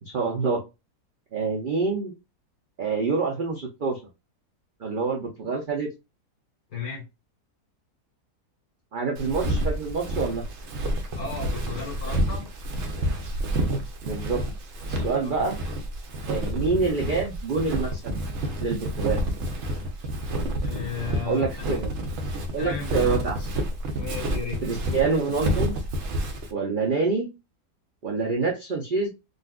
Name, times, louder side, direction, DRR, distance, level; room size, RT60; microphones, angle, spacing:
voice 1, 0.0-0.6 1.3-2.1 2.8-4.0 4.8-5.9 8.9-10.4 14.0-14.4 14.9-15.6 16.3-18.1 18.6-19.2 21.2-21.9 22.5-23.5 24.6-25.7 26.5-27.3 28.0-29.1, right 4 dB, 80° right, 0.4 m, -26 dB
voice 2, 6.7-7.0 11.1-12.5 15.2-15.3 20.6-21.5 22.6-22.9 24.0-24.6, left 5 dB, 70° left, 2.0 m, -34 dB
Walk footsteps, 9.2-26.5, right 1 dB, 60° right, 0.8 m, -29 dB
3.9 x 2.4 x 2.3 m
omnidirectional pair, 1.7 m